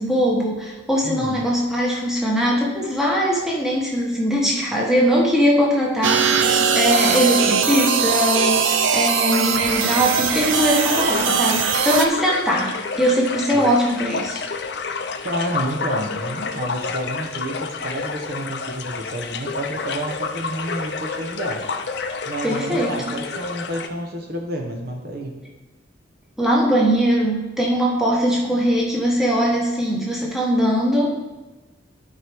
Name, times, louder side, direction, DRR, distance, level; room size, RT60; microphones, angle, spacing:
voice 1, 0.0-14.4 22.4-23.1 26.4-31.2, equal, ahead, -4 dB, 1.2 m, -21 dB
voice 2, 1.0-1.4 13.5-13.7 15.2-21.6 22.3-25.4, right 1 dB, 55° right, 1 dB, 1.0 m, -30 dB
sound 1, 6.0-12.1, right 6 dB, 90° right, 0.6 m, -20 dB
sound 2, 10.3-23.9, left 4 dB, 60° left, 0.5 m, -29 dB
12.0 x 4.6 x 3.5 m, 1.1 s
head